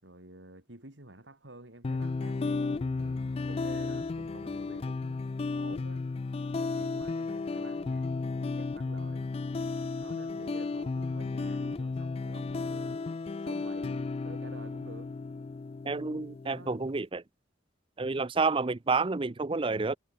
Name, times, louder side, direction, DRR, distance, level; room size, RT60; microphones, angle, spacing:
voice 1, 0.0-5.3 5.5-6.0 6.5-9.3 10.0-13.1 13.4-15.2 16.5-16.8, right 1 dB, 70° right, 4.6 m, -50 dB
sound 1, 1.8-16.9, left 3 dB, 30° left, 0.3 m, -34 dB
voice 2, 15.8-17.2 18.0-20.0, right 4 dB, 30° right, 0.6 m, -29 dB
head